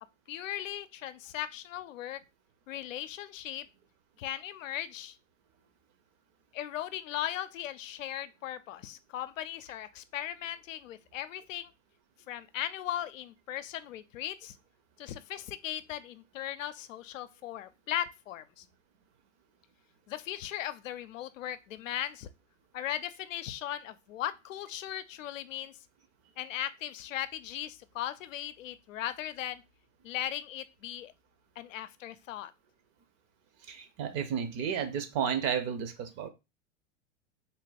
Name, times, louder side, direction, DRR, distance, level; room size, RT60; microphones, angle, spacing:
voice 1, 0.3-2.2 2.7-3.7 4.2-5.2 6.5-11.7 12.3-14.6 15.0-18.6 20.1-22.3 22.7-25.7 26.4-29.6 30.0-31.1 31.6-32.5, left 11 dB, 85° left, 0.6 m, -38 dB
voice 2, 33.7-36.3, right 8 dB, 40° right, 0.8 m, -32 dB
3.6 x 2.2 x 4.1 m
hypercardioid pair, 110°, 38 cm